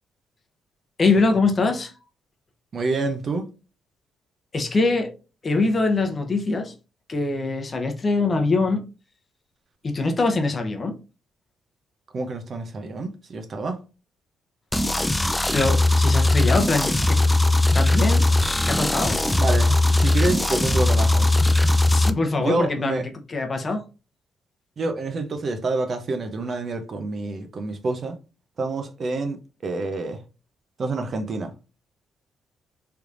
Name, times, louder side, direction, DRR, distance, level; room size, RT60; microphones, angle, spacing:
voice 1, 1.0-1.9 4.5-5.1 5.4-6.7 7.1-8.8 9.8-11.0 15.5-17.2 17.7-19.2 21.9-23.9, left 3 dB, 35° left, 0.8 m, -23 dB
voice 2, 2.7-3.5 12.1-13.8 19.4-21.3 22.4-23.0 24.8-28.2 28.6-29.4 29.6-30.2 30.8-31.5, right 3 dB, 45° right, 0.7 m, -27 dB
sound 1, 14.7-22.1, left 2 dB, 10° left, 0.4 m, -19 dB
3.3 x 3.1 x 2.5 m
cardioid pair, 90°, 0 cm